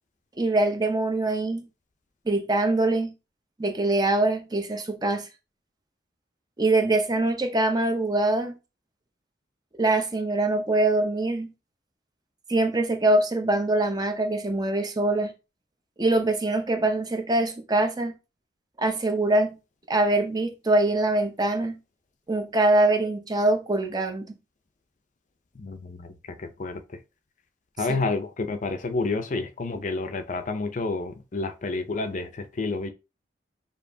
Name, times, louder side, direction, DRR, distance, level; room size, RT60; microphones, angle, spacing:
voice 1, 0.4-1.7 2.3-3.1 3.6-5.3 6.6-8.5 9.8-11.5 12.5-15.3 16.0-18.1 18.8-19.6 19.9-21.8 22.3-24.3 27.9-28.0, right 2 dB, 20° right, 0.7 m, -23 dB
voice 2, 25.6-26.1 26.4-26.8 27.8-32.9, left 3 dB, 40° left, 0.5 m, -29 dB
6.7 x 2.9 x 2.7 m
head